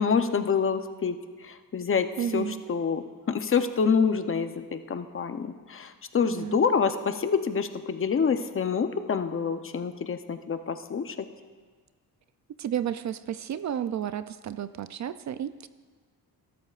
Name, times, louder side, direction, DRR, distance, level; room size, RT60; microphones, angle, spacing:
voice 1, 0.0-2.1 2.3-11.2, left 6 dB, 35° left, 9 dB, 0.7 m, -27 dB
voice 2, 2.2-2.6 6.2-6.6 12.6-15.7, right 9 dB, 50° right, 13 dB, 0.4 m, -32 dB
20.5 x 13.0 x 2.4 m, 1.5 s
cardioid pair, 105°, 37 cm